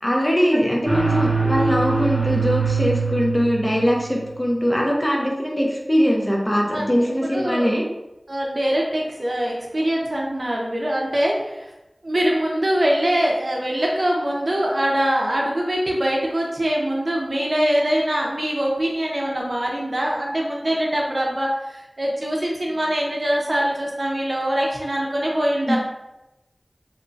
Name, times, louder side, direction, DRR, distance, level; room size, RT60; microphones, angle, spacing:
voice 1, 0.0-7.8 25.7-25.8, equal, 20° left, -2 dB, 0.6 m, -21 dB
sound 1, 0.8-4.3, right 4 dB, 20° right, 0.8 m, -23 dB
voice 2, 7.3-7.7 8.3-11.7 12.0-25.8, equal, 55° right, -2 dB, 0.5 m, -23 dB
2.8 x 2.1 x 2.6 m, 0.96 s
wide cardioid pair, 50°, 0 cm